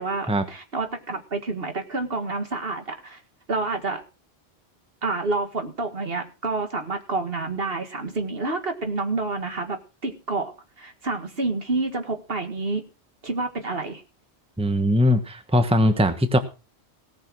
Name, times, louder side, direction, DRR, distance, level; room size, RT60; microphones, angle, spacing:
voice 1, 0.0-3.2 3.5-4.0 5.0-9.8 10.0-12.8 13.2-14.0, right 3 dB, 60° right, 7 dB, 2.0 m, -28 dB
voice 2, 14.6-16.4, left 1 dB, 5° right, 9 dB, 1.2 m, -20 dB
18.0 x 6.6 x 6.2 m, 0.32 s
omnidirectional pair, 1.1 m